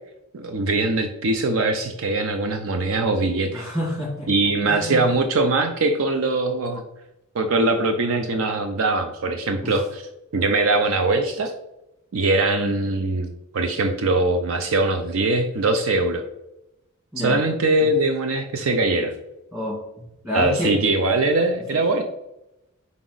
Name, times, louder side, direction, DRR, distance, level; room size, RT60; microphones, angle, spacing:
voice 1, 0.3-3.7 4.3-6.8 7.3-10.0 10.3-11.5 12.1-16.2 17.2-19.1 20.3-22.0, right 2 dB, 70° right, 7 dB, 0.5 m, -22 dB
voice 2, 3.5-4.3 4.7-5.1 9.6-9.7 17.1-17.4 19.5-20.8, left 1 dB, 20° right, -3 dB, 2.1 m, -29 dB
5.2 x 4.8 x 3.9 m, 0.90 s
head